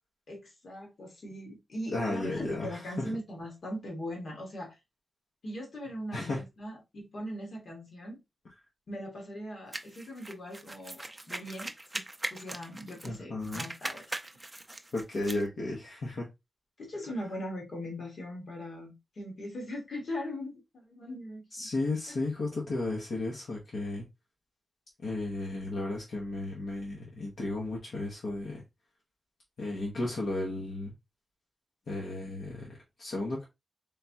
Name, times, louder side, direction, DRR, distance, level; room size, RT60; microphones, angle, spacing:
voice 1, 0.3-4.8 5.4-8.2 8.9-12.0 12.3-14.1 16.8-21.7, left 1 dB, 65° left, 1.8 m, -40 dB
voice 2, 1.9-3.1 6.1-6.4 13.0-13.6 14.9-16.3 21.5-24.1 25.0-28.6 29.6-30.9 31.9-33.4, left 2 dB, 80° left, 1.2 m, -34 dB
sound 1, 9.7-13.2 13.4-15.4, right 2 dB, 15° right, 0.4 m, -40 dB
3.8 x 3.6 x 2.8 m
wide cardioid pair, 160°, 0 cm